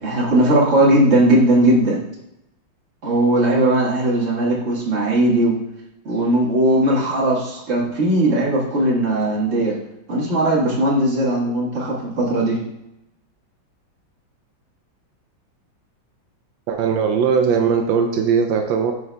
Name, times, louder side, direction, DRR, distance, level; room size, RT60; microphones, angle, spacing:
voice 1, 0.0-2.0 3.0-5.5 6.0-9.7 10.1-12.6, right 1 dB, 35° right, -4 dB, 1.7 m, -18 dB
voice 2, 16.7-18.9, right 6 dB, 80° right, 4 dB, 1.3 m, -19 dB
9.4 x 5.6 x 2.2 m, 0.87 s
omnidirectional pair, 2.1 m